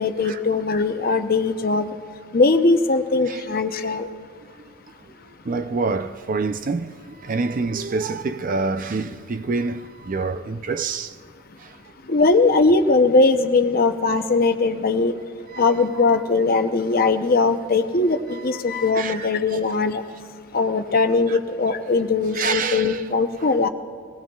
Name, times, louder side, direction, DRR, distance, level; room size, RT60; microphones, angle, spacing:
voice 1, 0.0-1.9 2.3-4.1 12.1-15.1 15.6-20.0 20.5-23.7, left 3 dB, 50° left, 0.7 m, -20 dB
voice 2, 5.4-11.1 11.6-11.8 15.5-15.7 18.3-18.4 19.0-19.3 21.3-21.4 22.3-23.0 23.4-23.5, right 4 dB, 45° right, 0.5 m, -27 dB
22.5 x 17.0 x 2.3 m
head